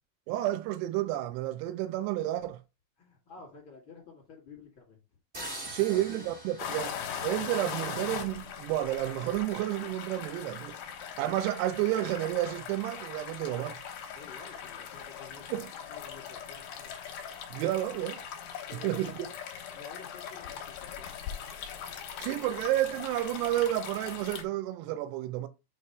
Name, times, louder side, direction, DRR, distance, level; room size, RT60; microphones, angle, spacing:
voice 1, 0.3-2.6 5.7-10.8 11.2-13.7 15.5-15.7 17.5-18.2 18.8-19.1 22.2-25.5, right 14 dB, 90° right, 2.3 m, -31 dB
voice 2, 3.0-5.0 5.5-6.3 13.4-13.7 14.1-16.9 18.7-19.4 19.7-21.2, left 4 dB, 65° left, 1.2 m, -51 dB
sound 1, 5.3-8.2, right 1 dB, 35° right, 0.7 m, -44 dB
sound 2, 6.6-24.4, left 8 dB, 80° left, 1.8 m, -40 dB
8.6 x 3.1 x 4.7 m
omnidirectional pair, 5.5 m